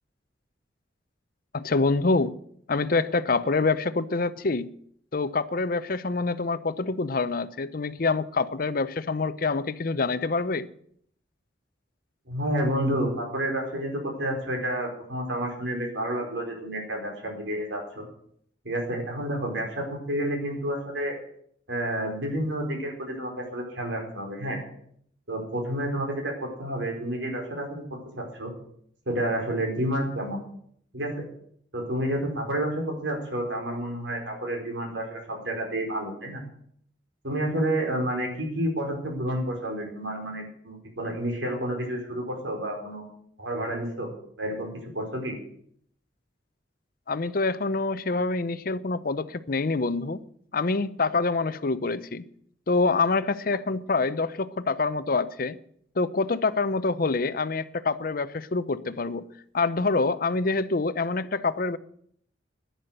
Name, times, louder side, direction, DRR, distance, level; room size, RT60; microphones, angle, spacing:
voice 1, 1.5-2.3 2.7-4.7 5.1-10.7 47.1-50.2 50.5-52.2 52.7-55.6 56.0-59.2 59.5-61.8, left 3 dB, 50° left, 0.6 m, -26 dB
voice 2, 12.3-18.0 18.6-21.2 21.7-24.6 25.3-28.5 29.1-30.4 30.9-31.2 31.7-36.4 37.2-43.1 43.4-44.1 44.4-45.4, right 1 dB, 85° right, 4.6 m, -30 dB
11.0 x 10.5 x 7.9 m
head